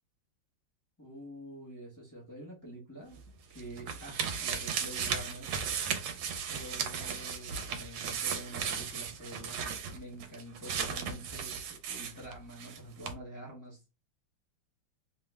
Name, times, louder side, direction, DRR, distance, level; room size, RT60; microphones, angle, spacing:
voice 1, 1.0-3.2 3.5-5.5 6.5-9.6 9.9-13.8, right 1 dB, 20° left, 0.5 m, -47 dB
sound 1, 3.1-12.8 13.0-13.1, right 7 dB, 85° right, 1.5 m, -36 dB
3.6 x 2.1 x 3.3 m
omnidirectional pair, 2.3 m